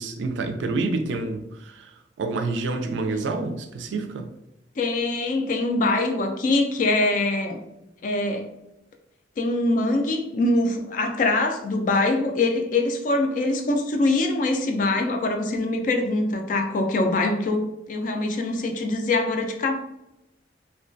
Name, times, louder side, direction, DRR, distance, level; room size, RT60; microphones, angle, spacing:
voice 1, 0.0-1.9 2.2-4.3, right 3 dB, 85° right, 6 dB, 0.3 m, -28 dB
voice 2, 4.8-7.6 8.0-8.5 9.4-19.7, left 2 dB, 45° left, 4 dB, 0.3 m, -23 dB
2.3 x 2.2 x 2.5 m, 0.88 s
head